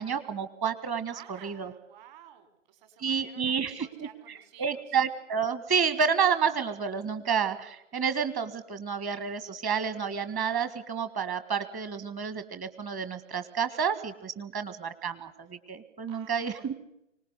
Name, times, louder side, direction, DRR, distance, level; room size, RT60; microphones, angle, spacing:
voice 1, 0.0-1.7 3.0-16.7, right 6 dB, 20° right, 12 dB, 1.6 m, -30 dB
voice 2, 1.1-5.0 16.1-16.7, right 10 dB, 35° right, 9 dB, 4.4 m, -53 dB
25.5 x 19.5 x 8.1 m, 0.82 s
hypercardioid pair, 135°, 38 cm